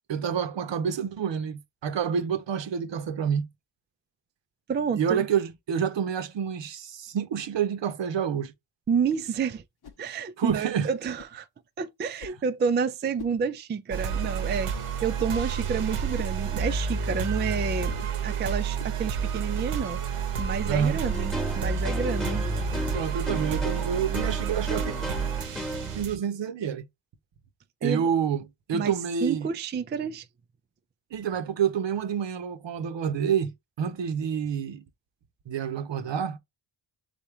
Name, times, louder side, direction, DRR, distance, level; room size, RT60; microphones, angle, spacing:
voice 1, 0.0-3.5 4.9-8.5 10.4-10.9 20.7-21.0 22.9-24.9 25.9-26.9 27.8-28.4 28.7-29.5 31.1-33.5 33.8-34.8 35.5-36.4, right 7 dB, 60° right, 0.8 m, -28 dB
voice 2, 4.7-5.3 8.9-9.6 10.0-11.5 11.8-18.0 18.2-22.5 27.8-28.1 28.7-28.9 29.2-30.3, right 6 dB, 25° right, 0.3 m, -29 dB
sound 1, 9.8-10.0 11.2-11.4 12.2-12.4 13.2-13.4 14.2-14.4 15.2-15.4 16.1-16.4 17.1-17.3 17.9-18.2 18.8-19.0 19.5-19.8 20.8-21.0 21.6-21.8, left 8 dB, 50° left, 0.8 m, -46 dB
sound 2, 13.9-26.2, right 6 dB, 85° right, 1.0 m, -30 dB
sound 3, 21.0-26.0, equal, ahead, 1.1 m, -35 dB
4.1 x 3.5 x 3.1 m
cardioid pair, 80°, 50 cm